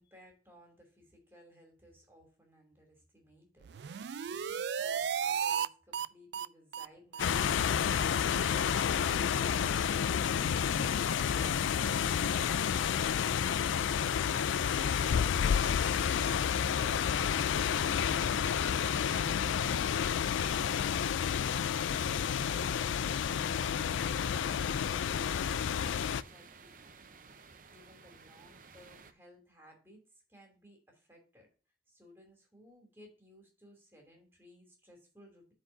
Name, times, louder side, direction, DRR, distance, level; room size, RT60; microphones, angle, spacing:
voice 1, 0.0-13.8 27.7-31.5 31.9-35.5, equal, 10° right, 1 dB, 2.7 m, -59 dB
sound 1, 3.6-5.7 5.9-6.1 6.3-6.5 6.7-6.9 7.1-7.3 7.5-7.7 7.9-8.0 8.3-8.4 8.7-8.8, right 7 dB, 60° right, 0.3 m, -34 dB
sound 2, 7.2-26.2, left 8 dB, 85° left, 0.4 m, -30 dB
sound 3, 13.2-29.1, right 4 dB, 45° right, 0.7 m, -56 dB
13.0 x 4.6 x 2.6 m, 0.36 s
head